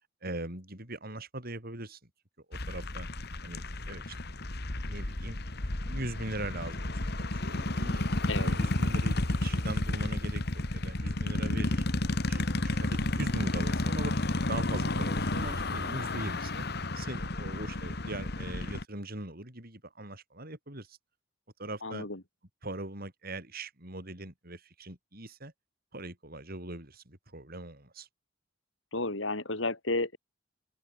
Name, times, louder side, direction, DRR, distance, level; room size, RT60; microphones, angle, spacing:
voice 1, 0.2-2.1 2.5-3.1 3.4-4.4 4.9-5.4 5.8-6.9 7.3-11.9 12.3-16.7 16.9-21.0 21.6-22.1 22.6-25.5 25.9-28.1, right 2 dB, 50° right, 7.0 m, -41 dB
sound 1, 2.5-18.8, left 1 dB, 60° left, 2.1 m, -31 dB
voice 2, 21.8-22.2 28.9-30.2, left 2 dB, 80° left, 4.9 m, -32 dB
open air
head